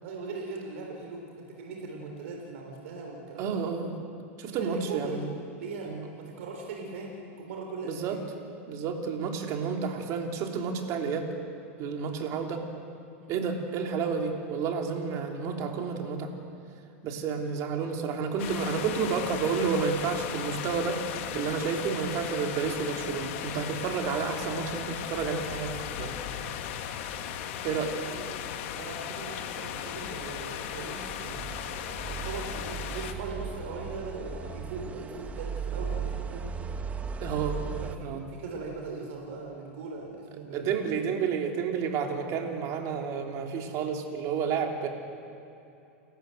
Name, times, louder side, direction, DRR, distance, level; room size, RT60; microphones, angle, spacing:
voice 1, 0.0-3.9 4.5-8.3 13.1-13.3 27.8-28.3 28.7-31.5 32.0-36.5 37.6-41.1, right 3 dB, 70° right, 1 dB, 3.9 m, -40 dB
voice 2, 3.4-3.9 4.4-5.3 5.8-6.1 7.9-8.2 8.7-11.3 11.8-12.6 13.3-16.3 17.0-21.0 21.3-26.1 27.6-27.9 37.2-37.6 38.0-38.2 40.5-44.9, right 6 dB, 45° right, 2 dB, 3.2 m, -30 dB
sound 1, 18.4-33.1, left 9 dB, 60° left, 1.9 m, -37 dB
sound 2, 29.9-38.0, right 6 dB, 20° right, 1.1 m, -37 dB
29.5 x 14.0 x 7.9 m, 2.7 s
hypercardioid pair, 125°, 8 cm